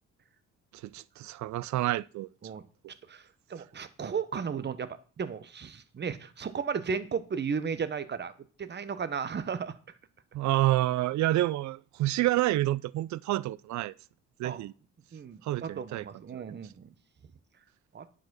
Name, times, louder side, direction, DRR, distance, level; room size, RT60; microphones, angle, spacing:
voice 1, 0.9-2.3 10.3-13.9 14.4-14.7 15.5-16.1 16.3-16.6, right 15 dB, 70° right, 0.4 m, -28 dB
voice 2, 3.5-8.3 8.6-9.8 14.4-14.6 15.1-16.9 17.9-18.1, right 6 dB, 35° right, 0.9 m, -34 dB
9.3 x 4.9 x 6.0 m
cardioid pair, 90°, 30 cm